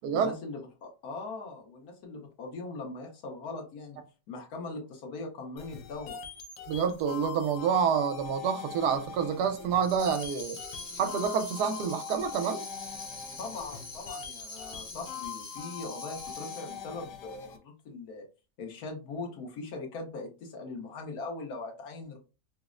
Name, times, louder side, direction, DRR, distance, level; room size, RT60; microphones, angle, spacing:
voice 1, 0.1-4.0 4.3-6.2 13.4-18.2 18.6-22.2, left 3 dB, 70° left, 1.3 m, -40 dB
sound 1, 5.6-17.6, left 7 dB, 85° left, 1.2 m, -43 dB
voice 2, 6.7-10.6 10.9-12.6, right 7 dB, 80° right, 1.1 m, -28 dB
Tambourine, 9.8-16.9, left 3 dB, 35° left, 0.5 m, -44 dB
5.0 x 2.0 x 2.4 m
omnidirectional pair, 1.8 m